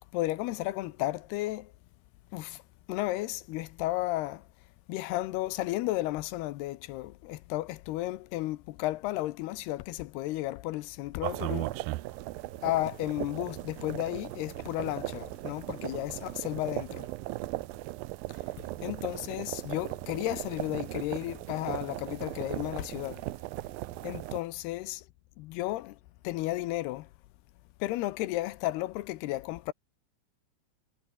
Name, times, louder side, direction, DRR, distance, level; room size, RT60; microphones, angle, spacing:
voice 1, 0.1-1.7 2.3-2.6 2.9-4.5 4.9-11.8 12.6-17.1 18.8-23.2 24.0-25.0 25.4-26.0 26.2-27.1 27.8-29.7, left 17 dB, 75° left, 2.7 m, -33 dB
sound 1, 11.2-24.4, right 19 dB, 90° right, 2.0 m, -37 dB
omnidirectional pair, 5.0 m